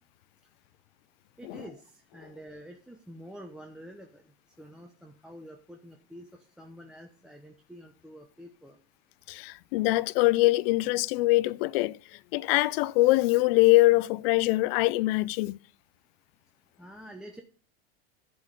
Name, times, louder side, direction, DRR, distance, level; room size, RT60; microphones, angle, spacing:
voice 1, 1.4-8.8 16.8-17.4, equal, 5° right, 0.9 m, -48 dB
voice 2, 9.3-12.0 12.3-15.6, left 20 dB, 65° left, 0.5 m, -23 dB
11.0 x 3.9 x 6.6 m
hypercardioid pair, 105°, 32 cm